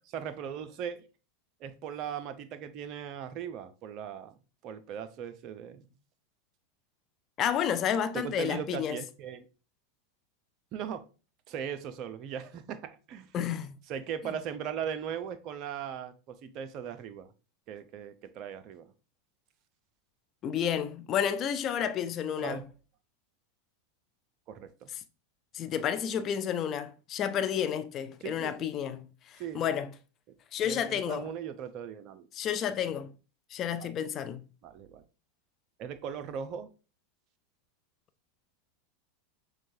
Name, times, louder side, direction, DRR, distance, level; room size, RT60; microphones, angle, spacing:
voice 1, 0.1-1.0 1.6-4.3 4.6-5.9 8.1-9.5 10.7-11.0 11.5-13.3 13.9-17.3 17.7-18.9 22.4-22.6 24.5-24.9 28.2-28.8 29.4-29.6 30.3-30.4 30.6-32.3 33.8-33.9 34.6-35.0 35.8-36.7, right 8 dB, 40° right, 0.5 m, -39 dB
voice 2, 7.4-9.0 13.3-13.8 20.4-22.6 25.5-29.9 30.5-31.3 32.3-33.1 33.5-34.4, left 9 dB, 35° left, 0.4 m, -31 dB
6.0 x 2.2 x 2.6 m
figure-of-eight pair, 85°, 0 cm